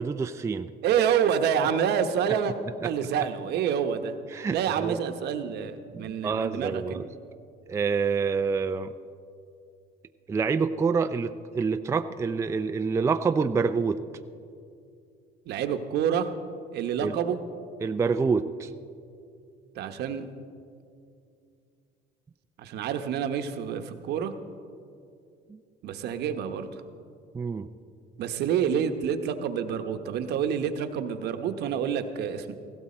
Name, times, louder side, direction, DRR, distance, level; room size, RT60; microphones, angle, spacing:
voice 1, 0.0-0.7 2.8-2.9 4.3-5.0 5.9-7.1 7.7-8.9 10.3-14.0 17.0-17.1 17.8-18.7 25.5-25.6 27.3-27.7, right 5 dB, 15° right, 9 dB, 0.4 m, -27 dB
voice 2, 0.8-2.5 2.8-4.1 4.5-7.0 15.5-16.3 16.7-17.4 19.8-20.3 22.6-24.3 25.8-26.7 28.2-32.5, right 8 dB, 65° right, 8 dB, 1.0 m, -27 dB
16.5 x 16.0 x 4.3 m, 2.4 s
cardioid pair, 130°, 18 cm